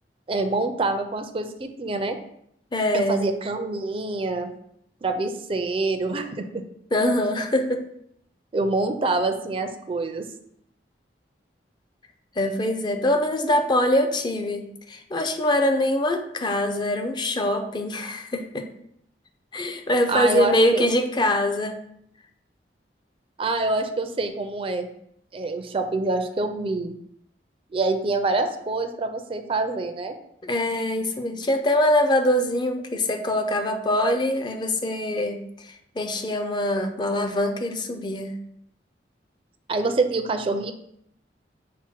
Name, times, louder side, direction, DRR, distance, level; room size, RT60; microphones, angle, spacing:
voice 1, 0.3-2.2 2.9-4.5 5.0-6.6 8.5-10.3 20.1-20.9 23.4-24.9 25.3-26.9 27.7-30.2 39.7-40.7, right 3 dB, 30° right, 7 dB, 0.4 m, -26 dB
voice 2, 2.7-3.2 6.9-7.8 12.4-18.7 19.5-21.8 30.4-35.4 35.7-38.4, left 1 dB, 25° left, 5 dB, 0.4 m, -23 dB
5.9 x 2.1 x 4.3 m, 0.72 s
head